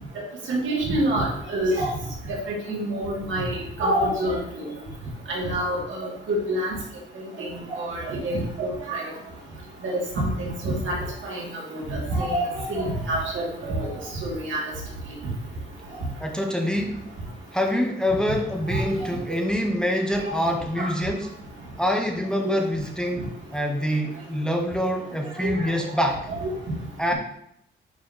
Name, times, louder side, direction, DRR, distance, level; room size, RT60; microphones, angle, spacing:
voice 1, 0.5-1.9 2.5-4.7 5.3-6.8 7.4-9.1 10.1-11.0 11.2-13.9 14.2-14.6 18.7-18.9 20.8-20.9 22.4-22.6 25.4-25.7 26.3-26.5, right 1 dB, 75° right, -4 dB, 2.7 m, -27 dB
voice 2, 16.2-17.1 17.5-21.4 21.8-23.3 23.5-26.2 27.0-27.1, equal, 5° left, 2 dB, 0.7 m, -25 dB
9.4 x 4.3 x 3.0 m, 0.75 s
wide cardioid pair, 145°, 20 cm